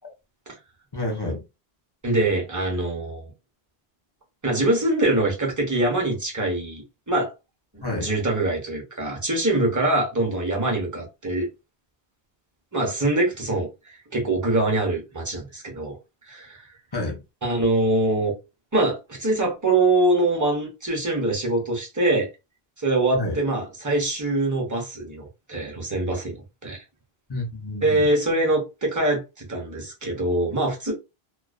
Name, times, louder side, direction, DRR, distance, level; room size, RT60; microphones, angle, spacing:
voice 1, 0.9-1.4 7.8-8.1 16.9-17.2 23.1-23.4 27.3-28.1, left 1 dB, 30° left, 0.6 m, -29 dB
voice 2, 2.0-3.3 4.4-7.3 7.7-11.5 12.7-13.7 14.1-16.0 16.3-16.6 17.4-18.3 18.7-22.3 22.8-26.8 27.8-30.9, right 2 dB, 20° right, 0.7 m, -24 dB
2.3 x 2.2 x 2.4 m
omnidirectional pair, 1.1 m